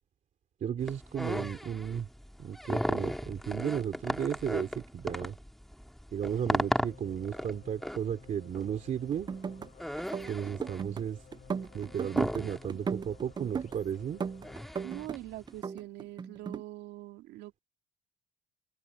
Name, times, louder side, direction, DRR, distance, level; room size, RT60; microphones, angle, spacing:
voice 1, 0.6-2.1 2.4-5.4 6.1-9.3 10.2-11.2 11.7-14.2, right 8 dB, 50° right, 2.8 m, -34 dB
sound 1, 0.8-15.6, equal, ahead, 2.2 m, -36 dB
sound 2, 6.1-14.9, left 8 dB, 50° left, 6.7 m, -56 dB
sound 3, 9.1-9.7 10.0-11.0 11.3-12.4 12.7-13.8 14.2-15.2 15.5-16.6, right 6 dB, 25° right, 0.5 m, -36 dB
voice 2, 14.8-17.6, right 16 dB, 85° right, 2.4 m, -43 dB
open air
cardioid pair, 110°, 17 cm